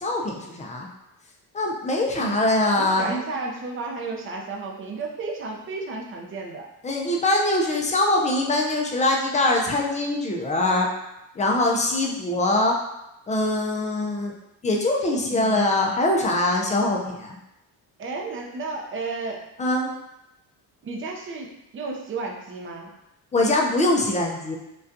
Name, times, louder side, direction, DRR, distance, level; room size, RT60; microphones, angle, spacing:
voice 1, 0.0-0.9 1.5-3.2 6.8-10.9 11.4-12.7 13.3-14.3 14.6-17.4 19.6-19.9 23.3-24.6, left 2 dB, 20° left, 0 dB, 0.4 m, -23 dB
voice 2, 2.7-6.7 15.3-15.7 18.0-19.4 20.8-22.9, right 3 dB, 30° right, 0 dB, 0.5 m, -33 dB
5.2 x 2.3 x 2.6 m, 0.88 s
cardioid pair, 145°, 39 cm